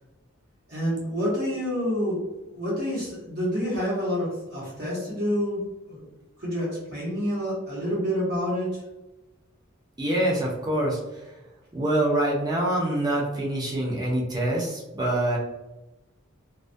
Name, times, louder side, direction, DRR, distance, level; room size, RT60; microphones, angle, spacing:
voice 1, 0.7-2.2 2.5-6.1 6.4-8.8, equal, 50° right, -7 dB, 0.9 m, -28 dB
voice 2, 10.0-11.3 11.7-15.4, right 1 dB, 20° right, -3 dB, 0.5 m, -25 dB
2.2 x 2.1 x 2.5 m, 1.0 s
head